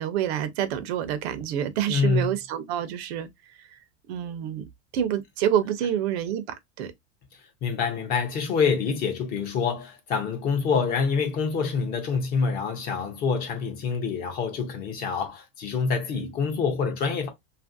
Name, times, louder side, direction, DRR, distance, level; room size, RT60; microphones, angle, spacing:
voice 1, 0.0-3.3 3.6-3.8 4.1-4.7 4.9-6.9, right 10 dB, 70° right, 0.6 m, -27 dB
voice 2, 1.9-2.3 7.6-17.3, left 5 dB, 30° left, 0.5 m, -26 dB
2.9 x 2.5 x 2.4 m
supercardioid pair, 165°, 34 cm